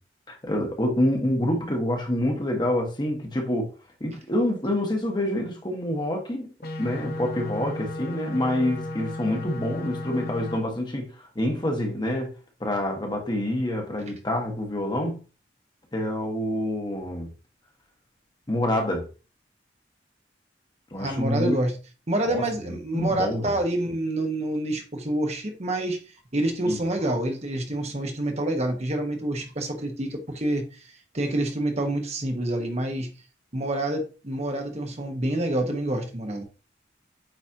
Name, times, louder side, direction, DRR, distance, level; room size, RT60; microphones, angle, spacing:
voice 1, 0.3-3.7 4.0-6.5 6.8-12.3 12.6-15.2 15.9-17.3 18.5-19.1 20.9-21.5 22.3-22.4 22.9-23.6 26.7-26.8, left 1 dB, 25° left, 1.4 m, -27 dB
sound 1, 6.6-10.6, left 1 dB, 60° left, 1.1 m, -34 dB
voice 2, 21.0-21.7 22.1-26.0 26.3-30.6 31.1-33.1 33.5-36.4, right 1 dB, 40° right, 1.2 m, -27 dB
8.9 x 4.1 x 2.9 m
head